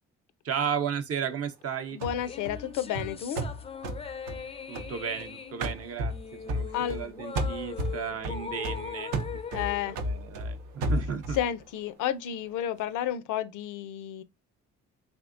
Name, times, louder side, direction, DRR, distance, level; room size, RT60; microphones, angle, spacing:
voice 1, 0.4-2.0 4.7-11.4, right 7 dB, 50° right, 0.6 m, -34 dB
voice 2, 1.9-3.4 6.7-7.0 9.5-10.0 11.3-14.2, left 11 dB, 90° left, 0.5 m, -31 dB
sound 1, 2.0-5.3 5.6-7.1 7.4-11.5, equal, 85° right, 0.7 m, -33 dB
sound 2, 2.2-10.8, left 6 dB, 20° left, 0.3 m, -41 dB
3.5 x 3.4 x 2.4 m
cardioid pair, 90°, 30 cm